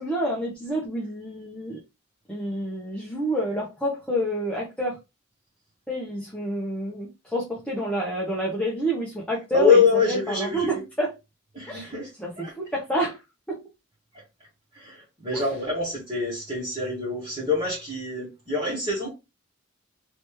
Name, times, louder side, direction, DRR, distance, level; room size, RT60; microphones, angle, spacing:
voice 1, 0.0-1.8 2.3-5.0 5.9-11.1 11.7-11.9 12.2-12.3 12.6-13.2 13.5-13.6 15.3-15.4, equal, 5° left, 0.7 m, -28 dB
voice 2, 9.5-10.8 11.5-12.1 12.4-12.5 14.7-19.1, left 4 dB, 30° right, 1.5 m, -25 dB
3.3 x 3.1 x 2.9 m
head